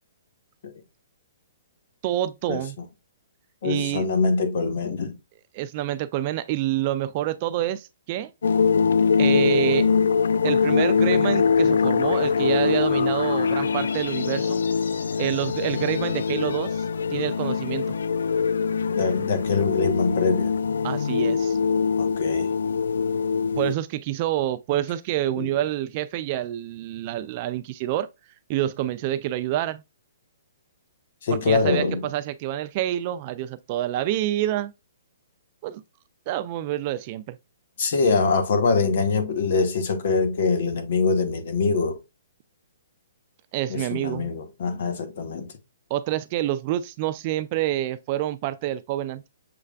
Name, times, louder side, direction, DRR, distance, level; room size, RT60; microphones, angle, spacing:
voice 1, 2.0-2.8 3.6-4.1 5.5-8.3 9.2-9.9 10.4-14.6 15.2-16.8 17.1-17.9 20.8-21.6 23.6-28.1 28.5-29.8 31.4-34.7 35.6-35.8 36.3-37.4 43.5-44.3 45.9-49.2, right 13 dB, 35° right, 0.4 m, -27 dB
voice 2, 3.6-5.2 18.9-20.5 22.0-22.5 25.4-25.5 31.2-32.0 37.8-42.0 43.7-45.5, left 4 dB, 55° left, 1.2 m, -24 dB
sound 1, 8.4-23.7, left 5 dB, 85° left, 0.3 m, -23 dB
6.8 x 3.2 x 2.3 m
hypercardioid pair, 155°, 0 cm